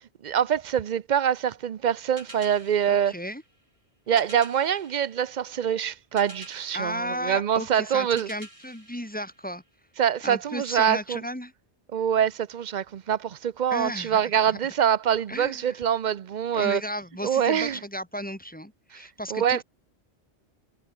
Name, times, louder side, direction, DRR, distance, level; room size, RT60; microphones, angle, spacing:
voice 1, 0.2-3.1 4.1-8.3 10.0-11.2 11.9-16.8 17.2-17.8 18.9-19.0 19.3-19.6, right 9 dB, 50° right, 0.7 m, -25 dB
sound 1, 2.2-10.0, right 1 dB, 30° right, 6.1 m, -50 dB
voice 2, 2.9-3.4 6.7-9.6 10.2-11.5 13.7-14.6 15.3-15.8 16.5-19.6, equal, 10° left, 1.7 m, -34 dB
omnidirectional pair, 1.1 m